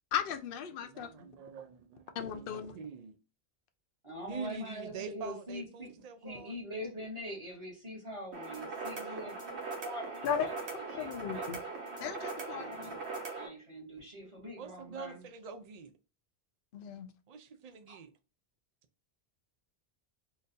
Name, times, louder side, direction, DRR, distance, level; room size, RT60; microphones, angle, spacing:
voice 1, 0.1-1.1 2.2-2.7 10.2-10.5 10.9-11.6 12.0-12.9 16.7-17.1, left 8 dB, 65° left, 0.7 m, -36 dB
voice 2, 0.9-2.0 2.3-3.2 4.3-6.6 8.3-9.2 14.6-15.9 17.3-18.1, right 5 dB, 55° right, 0.5 m, -45 dB
voice 3, 4.0-5.9 6.2-10.5 10.9-11.4 12.5-13.0 13.3-15.3 17.9-18.0, equal, 30° right, 1.6 m, -44 dB
sound 1, 8.3-13.5, right 3 dB, 85° right, 1.3 m, -40 dB
3.8 x 2.6 x 2.6 m
omnidirectional pair, 1.1 m